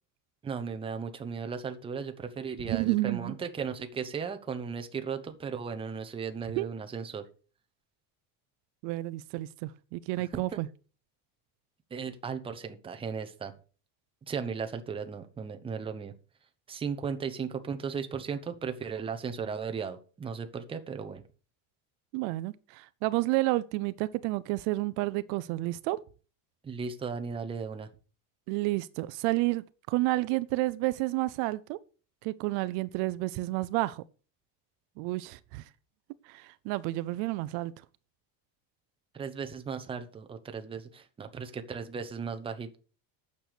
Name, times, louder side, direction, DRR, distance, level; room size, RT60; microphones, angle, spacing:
voice 1, 0.4-7.2 10.2-10.6 11.9-13.5 14.3-16.1 16.7-21.2 26.6-27.9 39.1-42.8, right 6 dB, 10° right, 0.8 m, -36 dB
voice 2, 2.7-3.4 6.6-6.7 8.8-10.7 22.1-26.0 28.5-31.8 32.2-34.0 35.0-35.6 36.3-37.7, right 19 dB, 65° right, 0.6 m, -30 dB
9.2 x 6.9 x 6.4 m
cardioid pair, 175°, 47 cm